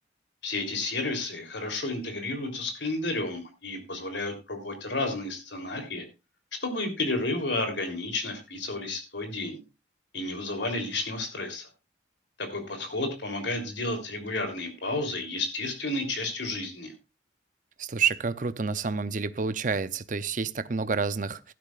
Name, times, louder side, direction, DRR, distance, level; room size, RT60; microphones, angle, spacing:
voice 1, 0.4-6.0 6.6-9.6 10.1-11.7 12.4-16.9, left 2 dB, 70° left, 3.4 m, -31 dB
voice 2, 17.8-21.5, right 5 dB, 45° right, 0.6 m, -29 dB
15.5 x 12.0 x 2.5 m
head